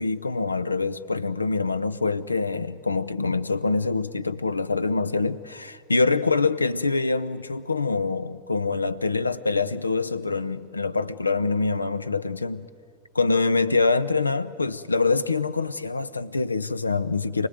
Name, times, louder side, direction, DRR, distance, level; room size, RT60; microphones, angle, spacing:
voice 1, 0.0-12.7 13.1-17.5, left 4 dB, 80° left, 16 dB, 0.7 m, -25 dB
29.0 x 19.5 x 9.1 m, 2.2 s
figure-of-eight pair, 90°, 0 cm